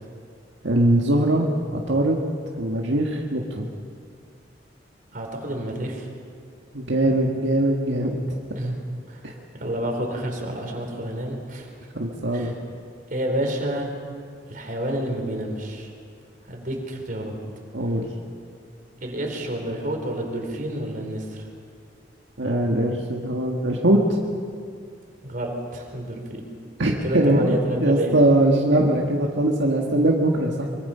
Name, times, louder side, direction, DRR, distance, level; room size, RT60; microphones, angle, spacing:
voice 1, 0.6-2.2 2.6-3.7 6.7-8.1 9.2-9.3 11.9-12.5 17.7-18.0 22.4-24.0 26.8-30.7, right 1 dB, 80° right, 0 dB, 1.8 m, -21 dB
voice 2, 5.1-6.1 8.6-8.8 9.1-9.2 9.5-11.7 12.3-12.5 13.1-13.9 14.5-15.9 16.5-17.4 19.0-21.5 25.2-26.5 27.0-28.1, right 1 dB, 45° right, 1 dB, 4.0 m, -29 dB
23.5 x 23.5 x 5.7 m, 2.2 s
head